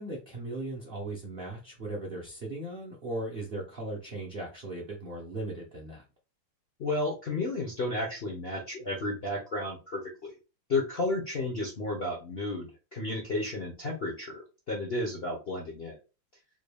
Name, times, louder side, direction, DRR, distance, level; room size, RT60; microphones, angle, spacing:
voice 1, 0.0-6.0, right 2 dB, 75° right, 0.5 m, -38 dB
voice 2, 6.8-10.3 10.7-16.0, left 2 dB, 70° left, 0.5 m, -32 dB
3.8 x 2.2 x 3.3 m
omnidirectional pair, 2.2 m